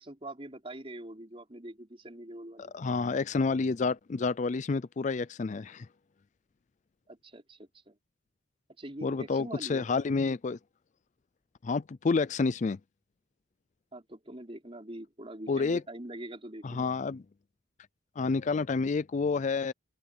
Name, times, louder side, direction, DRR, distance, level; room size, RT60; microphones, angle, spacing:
voice 1, 0.0-2.7 7.1-8.0 8.8-9.9 13.9-16.9, right 1 dB, 30° right, 4.9 m, -44 dB
voice 2, 2.6-5.9 9.0-10.6 11.6-12.8 15.5-15.8 16.6-17.2 18.2-19.7, left 4 dB, 40° left, 0.4 m, -29 dB
head